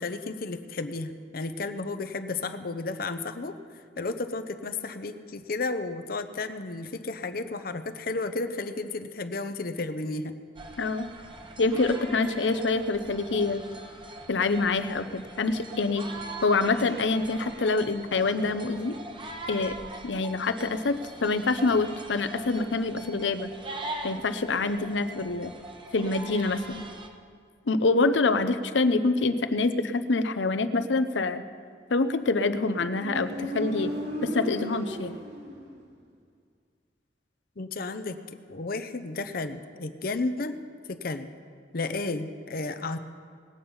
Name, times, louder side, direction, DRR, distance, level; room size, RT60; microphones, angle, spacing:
voice 1, 0.0-3.6 4.0-10.3 37.6-38.2 38.5-40.6 40.9-41.3 41.7-43.0, left 3 dB, 55° left, 9 dB, 0.7 m, -33 dB
sound 1, 10.6-27.1, right 2 dB, 30° right, 1.0 m, -42 dB
voice 2, 10.8-11.1 11.6-13.6 14.3-16.1 16.4-19.0 19.5-19.8 20.0-23.5 24.0-25.5 25.9-26.8 27.7-31.4 31.9-33.9 34.2-35.2, left 3 dB, 90° left, 10 dB, 0.7 m, -26 dB
Motorcycle, 32.2-35.9, equal, 75° right, 3.3 m, -36 dB
19.5 x 8.7 x 5.6 m, 2.1 s
head